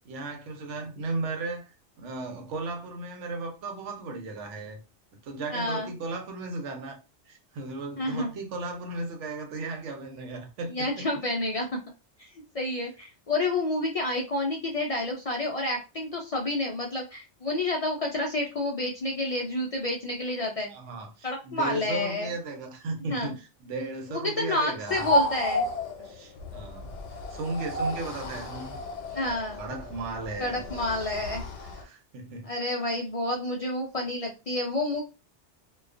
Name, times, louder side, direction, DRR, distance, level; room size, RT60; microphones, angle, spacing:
voice 1, 0.0-1.7 2.0-4.8 5.2-7.0 7.3-11.1 20.7-25.1 26.0-26.9 27.3-28.8 29.1-30.6 31.8-32.5, right 3 dB, 85° right, 1.0 m, -36 dB
voice 2, 5.5-5.9 8.0-8.3 10.7-11.8 12.2-12.3 12.5-20.7 21.2-22.3 23.1-23.3 24.1-25.7 29.1-29.6 30.4-31.5 32.4-35.0, left 2 dB, 70° left, 0.3 m, -29 dB
sound 1, 24.9-31.8, left 1 dB, 85° left, 0.9 m, -32 dB
2.3 x 2.2 x 2.4 m
omnidirectional pair, 1.2 m